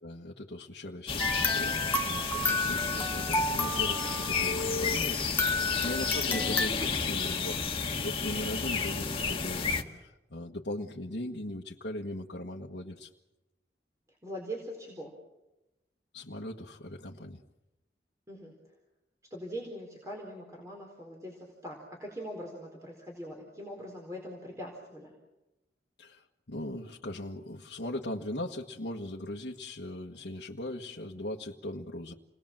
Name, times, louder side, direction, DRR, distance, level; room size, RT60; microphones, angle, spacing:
voice 1, 0.0-13.1 16.1-17.4 26.0-32.1, left 1 dB, 75° left, -3 dB, 1.5 m, -39 dB
sound 1, 1.1-9.8, left 5 dB, 30° left, 1.8 m, -31 dB
sound 2, 1.2-5.1 5.4-6.7, left 2 dB, 10° left, 1.1 m, -31 dB
voice 2, 14.2-15.1 18.3-18.5 19.3-25.1, equal, 20° right, -1 dB, 4.3 m, -42 dB
29.5 x 20.5 x 7.5 m, 0.99 s
head